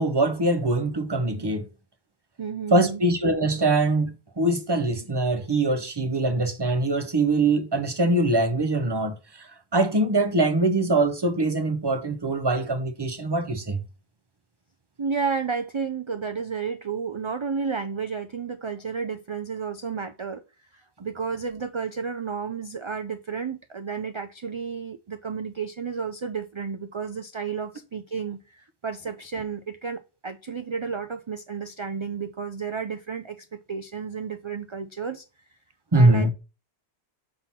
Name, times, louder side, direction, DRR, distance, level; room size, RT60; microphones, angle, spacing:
voice 1, 0.0-1.7 2.7-13.8 35.9-36.3, right 2 dB, 25° right, 0.8 m, -23 dB
voice 2, 2.4-3.0 15.0-20.4 20.7-35.2 35.9-36.3, right 6 dB, 45° right, 0.3 m, -32 dB
5.8 x 3.8 x 5.7 m
omnidirectional pair, 1.1 m